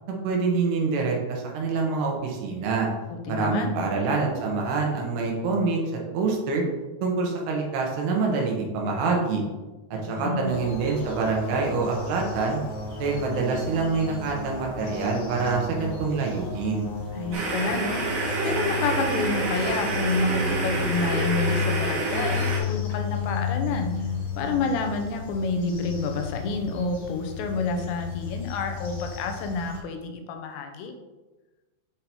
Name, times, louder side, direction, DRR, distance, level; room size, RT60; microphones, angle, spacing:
voice 1, 0.1-2.9 3.3-5.8 6.1-6.6 7.0-9.4 10.0-12.6 13.0-16.9, right 4 dB, 75° right, 0 dB, 3.1 m, -26 dB
voice 2, 3.1-3.8 9.9-10.6 17.1-23.9 24.3-30.9, left 3 dB, 85° left, 5 dB, 3.0 m, -29 dB
sound 1, 10.5-29.8, left 4 dB, 50° left, 3.4 m, -33 dB
sound 2, 17.3-22.6, right 2 dB, 55° right, 2.3 m, -28 dB
8.2 x 3.8 x 4.4 m, 1.2 s
omnidirectional pair, 5.0 m